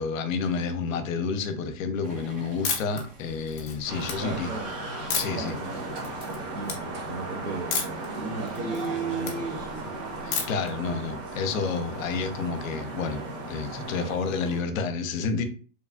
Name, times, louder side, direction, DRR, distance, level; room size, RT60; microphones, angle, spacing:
voice 1, 0.0-4.5 5.1-5.5 10.2-13.2 13.5-15.4, left 5 dB, 65° left, 8 dB, 0.7 m, -30 dB
sound 1, 2.0-14.6, right 4 dB, 20° right, 0.5 m, -41 dB
sound 2, 2.6-3.0 3.5-4.1 5.1-5.5 6.0-6.4 6.6-6.8 7.7-8.1 8.4-9.4 10.3-10.7, left 6 dB, 25° left, 0.5 m, -30 dB
sound 3, 3.9-14.2, right 2 dB, 50° right, 1.4 m, -36 dB
voice 2, 4.2-4.7 5.3-5.7 6.3-7.8 8.1-9.9, right 3 dB, 65° right, -2 dB, 0.8 m, -37 dB
3.1 x 2.3 x 2.3 m, 0.39 s
supercardioid pair, 155°, 43 cm